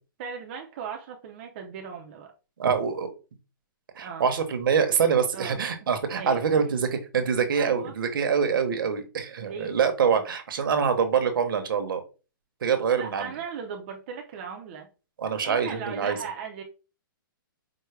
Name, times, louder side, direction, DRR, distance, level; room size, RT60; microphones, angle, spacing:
voice 1, 0.2-2.3 4.0-4.3 5.3-5.6 6.1-6.6 7.5-7.9 9.4-9.8 13.0-14.9 15.4-16.6, right 6 dB, 35° right, 0.5 m, -38 dB
voice 2, 2.6-3.1 4.0-12.0 12.6-13.3 15.2-16.2, right 6 dB, 70° right, 0.8 m, -25 dB
4.6 x 2.1 x 3.2 m
hypercardioid pair, 165°, 12 cm